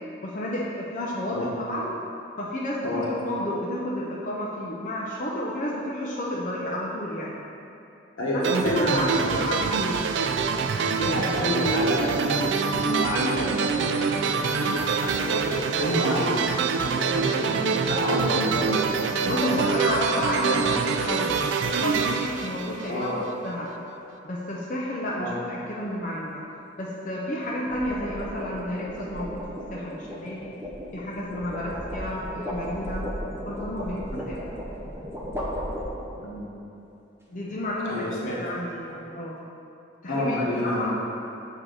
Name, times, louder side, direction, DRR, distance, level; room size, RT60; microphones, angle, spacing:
voice 1, 0.2-1.9 2.4-7.4 8.5-10.0 19.2-23.1 23.4-23.7 24.2-26.4 26.8-29.4 29.7-30.5 30.9-33.1 33.4-34.4 37.3-39.4 40.0-40.9, left 1 dB, 40° left, -5 dB, 0.5 m, -31 dB
voice 2, 8.2-9.4 11.0-16.4 16.8-18.8 22.9-23.2 25.2-25.3 36.1-36.5 37.9-38.3 40.1-40.9, left 1 dB, 80° left, -6 dB, 1.4 m, -29 dB
sound 1, 8.4-23.3, right 5 dB, 65° right, 0.3 m, -25 dB
sound 2, 27.4-36.3, equal, 15° right, 0.6 m, -35 dB
6.7 x 4.5 x 3.8 m, 2.8 s
head